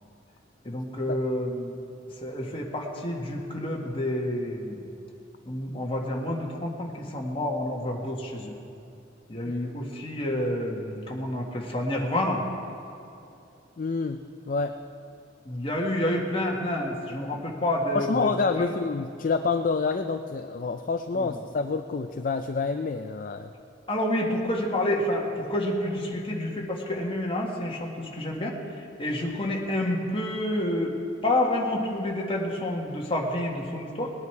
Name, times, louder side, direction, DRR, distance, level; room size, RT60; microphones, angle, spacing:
voice 1, 0.6-1.8 2.2-4.8 5.4-8.5 9.3-12.4 15.4-18.3 18.6-18.7 21.1-21.4 23.9-28.6 29.0-30.9 31.2-34.1, left 1 dB, 30° left, -1 dB, 1.7 m, -29 dB
voice 2, 13.8-14.2 14.5-14.8 17.9-23.5, left 4 dB, 45° left, 7 dB, 0.4 m, -28 dB
19.5 x 9.8 x 4.7 m, 2.8 s
head